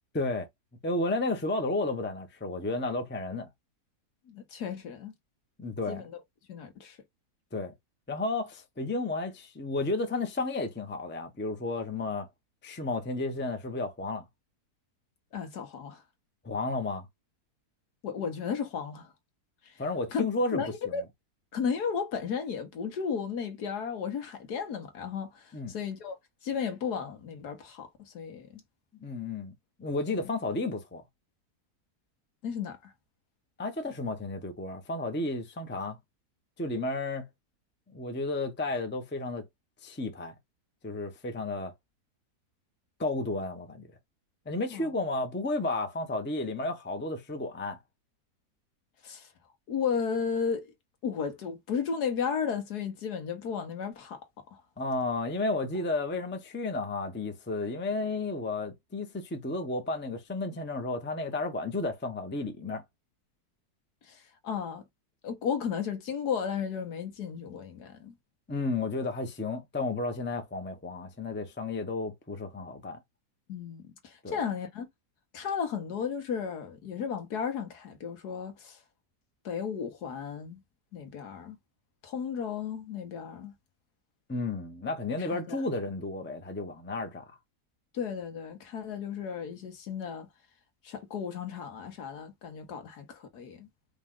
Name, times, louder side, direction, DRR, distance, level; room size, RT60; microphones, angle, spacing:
voice 1, 0.1-0.5 0.8-3.5 5.6-6.0 7.5-7.7 8.1-12.3 12.6-14.2 16.4-17.1 19.8-20.6 25.5-25.7 29.0-29.5 29.8-31.0 33.6-36.0 36.6-37.3 37.9-39.4 39.8-40.3 40.8-41.7 43.0-43.9 44.5-47.8 54.8-62.8 68.5-73.0 74.2-74.4 84.3-87.2, left 2 dB, 10° left, 0.6 m, -32 dB
voice 2, 4.3-5.1 5.9-6.0 6.5-7.0 15.3-16.0 18.0-19.1 20.1-20.3 20.5-21.0 21.5-26.2 26.4-27.9 28.1-28.6 32.4-32.8 44.7-44.9 49.0-49.3 49.7-50.7 51.0-54.2 54.5-54.6 64.1-64.8 65.2-68.1 73.5-74.9 75.3-78.8 79.4-80.6 80.9-81.6 82.0-83.5 85.3-85.6 87.9-90.3 90.8-93.7, left 6 dB, 75° left, 1.7 m, -34 dB
5.1 x 2.4 x 3.6 m
omnidirectional pair, 1.7 m